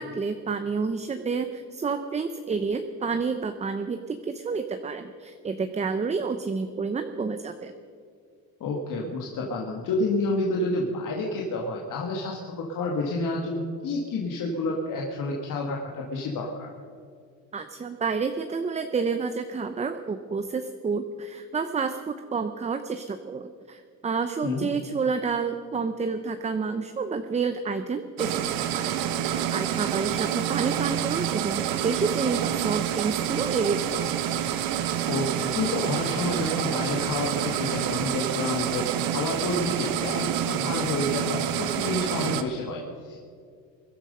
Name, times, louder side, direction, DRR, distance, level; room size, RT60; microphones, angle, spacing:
voice 1, 0.0-7.7 17.5-34.2, right 5 dB, 20° right, 8 dB, 0.7 m, -29 dB
voice 2, 8.6-16.7 24.4-24.7 35.1-43.2, left 2 dB, 60° left, -1 dB, 2.1 m, -29 dB
sound 1, 28.2-42.4, right 10 dB, 75° right, 1.2 m, -28 dB
21.0 x 11.5 x 5.5 m, 2.3 s
cardioid pair, 120°, 36 cm